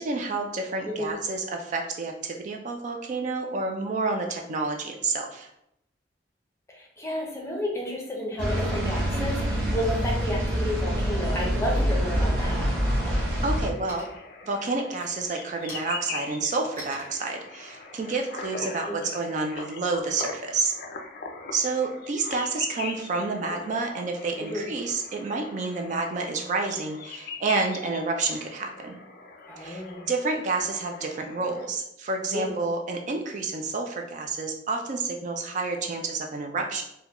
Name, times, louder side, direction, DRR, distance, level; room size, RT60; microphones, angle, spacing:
voice 1, 0.0-5.5 13.0-14.1 14.4-20.7 21.5-29.0 29.6-36.8, right 3 dB, 40° right, 3 dB, 0.3 m, -29 dB
voice 2, 6.7-12.7 18.9-19.0 23.4-23.6 24.5-24.7 29.5-30.1 32.3-32.7, left 1 dB, 15° left, -1 dB, 0.6 m, -32 dB
sound 1, 8.4-13.7, equal, 60° right, 0.8 m, -26 dB
sound 2, 12.5-31.7, left 4 dB, 55° left, 0.4 m, -42 dB
sound 3, 13.9-14.4 14.9-19.3, equal, 15° right, 1.4 m, -47 dB
3.6 x 2.1 x 2.9 m, 0.78 s
head